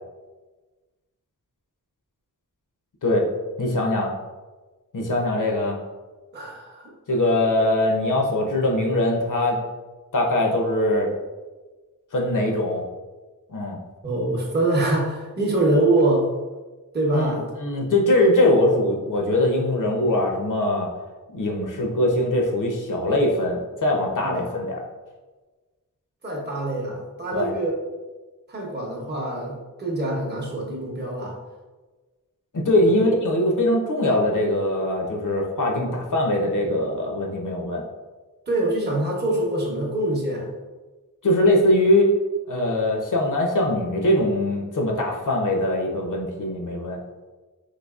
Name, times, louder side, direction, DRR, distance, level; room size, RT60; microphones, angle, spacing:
voice 1, 3.6-4.1 4.9-5.8 7.1-9.6 10.1-11.1 12.1-12.8 13.5-13.8 17.1-20.9 21.3-24.9 27.3-27.5 32.5-37.9 41.2-42.2 42.5-47.0, left 1 dB, 60° left, 0 dB, 0.6 m, -22 dB
voice 2, 6.3-6.9 8.3-8.4 14.0-16.3 16.9-17.4 24.2-24.5 26.2-27.7 28.5-31.4 38.5-40.5, right 2 dB, 30° right, -3 dB, 0.7 m, -24 dB
4.0 x 2.7 x 2.3 m, 1.3 s
wide cardioid pair, 85°, 35 cm